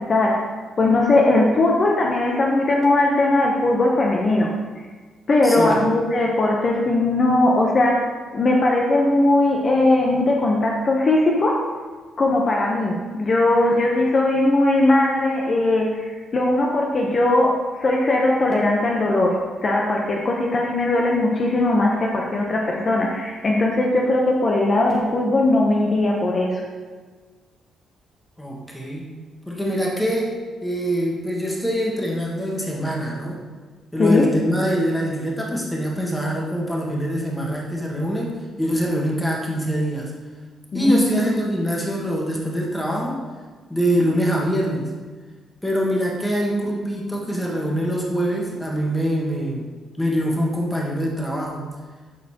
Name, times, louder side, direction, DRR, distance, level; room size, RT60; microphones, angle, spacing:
voice 1, 0.1-0.4 0.8-4.5 5.3-8.0 8.3-11.6 12.2-19.4 19.6-26.6 34.0-34.3 40.7-41.3, left 2 dB, 40° left, -1 dB, 0.8 m, -19 dB
voice 2, 5.4-5.8 28.4-29.1 29.5-30.4 30.6-33.4 33.9-38.3 38.6-40.1 40.7-43.2 43.7-44.9 45.6-49.6 50.0-51.6, equal, 10° left, -3 dB, 1.5 m, -24 dB
11.0 x 4.2 x 2.9 m, 1.4 s
cardioid pair, 90°, 0 cm